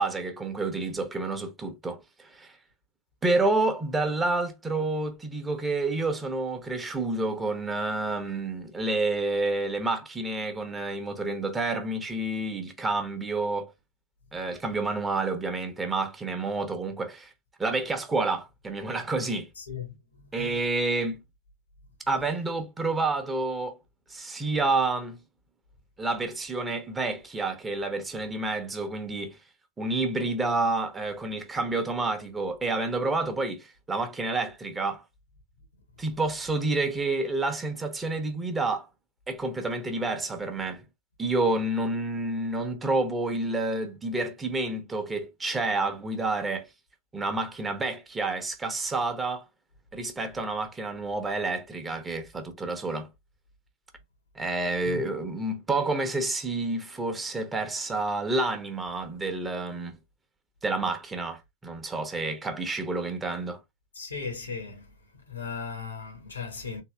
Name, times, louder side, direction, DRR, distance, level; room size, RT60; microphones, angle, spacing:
voice 1, 0.0-2.6 3.2-13.7 14.3-17.3 17.6-19.5 20.3-21.2 22.1-23.8 24.1-25.2 26.0-29.4 29.8-35.0 36.0-38.9 39.3-40.8 41.2-46.7 47.1-49.4 49.9-53.1 54.3-60.0 60.6-63.6, right 2 dB, 15° right, 1.0 m, -29 dB
voice 2, 19.6-20.6 54.8-55.0 63.9-64.9 65.3-66.8, left 6 dB, 75° left, 1.6 m, -37 dB
3.8 x 2.8 x 3.3 m
figure-of-eight pair, 90°, 0 cm